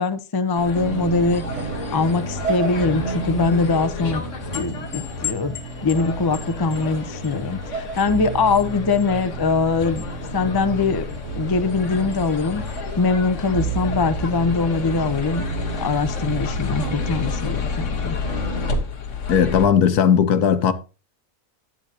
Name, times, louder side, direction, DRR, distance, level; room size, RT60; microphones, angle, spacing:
voice 1, 0.0-1.4 1.9-4.2 4.5-5.6 5.8-11.0 11.3-12.6 13.0-15.4 15.8-18.2, left 4 dB, 30° left, 0.4 m, -22 dB
sound 1, 0.5-19.7, left 5 dB, 55° left, 1.4 m, -31 dB
sound 2, 0.8-18.7, right 6 dB, 50° right, 1.5 m, -32 dB
voice 2, 19.3-20.7, left 8 dB, 80° left, 1.4 m, -17 dB
11.0 x 8.7 x 2.8 m
omnidirectional pair, 1.6 m